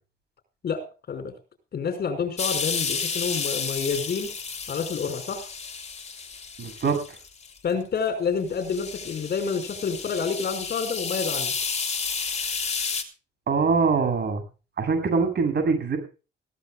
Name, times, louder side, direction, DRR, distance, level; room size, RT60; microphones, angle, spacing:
voice 1, 0.6-1.3 1.7-4.3 4.7-5.5 7.6-11.5, left 6 dB, 50° left, 8 dB, 5.7 m, -28 dB
sound 1, 2.4-7.6 8.0-8.1 8.5-13.0, left 5 dB, 35° left, 3.3 m, -31 dB
voice 2, 6.6-7.0 13.5-14.4 14.8-16.0, right 4 dB, 55° right, 7 dB, 7.6 m, -23 dB
21.5 x 16.5 x 2.4 m, 0.34 s
cardioid pair, 90°, 20 cm